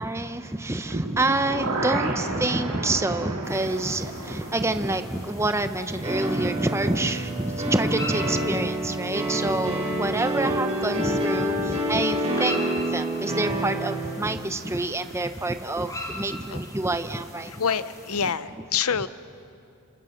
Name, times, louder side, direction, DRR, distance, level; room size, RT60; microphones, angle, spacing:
voice 1, 0.0-17.8, right 2 dB, 10° right, 9 dB, 0.8 m, -27 dB
sound 1, 0.9-6.9 7.2-7.3, right 2 dB, 85° right, 3.4 m, -33 dB
sound 2, 3.4-18.3, left 1 dB, 15° left, 4.9 m, -42 dB
sound 3, 6.0-14.3, right 1 dB, 30° right, 5.7 m, -27 dB
voice 2, 17.6-19.1, left 7 dB, 75° left, 14 dB, 0.8 m, -26 dB
30.0 x 27.0 x 6.6 m, 2.5 s
head